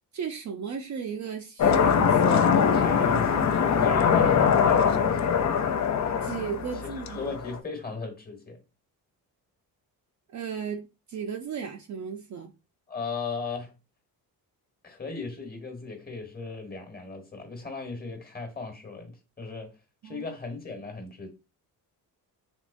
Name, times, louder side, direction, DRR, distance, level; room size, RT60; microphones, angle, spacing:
voice 1, 0.1-2.5 6.2-7.4 10.3-12.5 20.0-20.2, right 7 dB, 50° right, 0.5 m, -35 dB
sound 1, 1.6-7.6, left 7 dB, 50° left, 0.5 m, -22 dB
voice 2, 2.7-5.6 7.1-8.6 12.9-13.7 14.8-19.7 20.0-21.3, left 4 dB, 25° left, 1.2 m, -37 dB
3.6 x 3.0 x 2.5 m
cardioid pair, 105°, 38 cm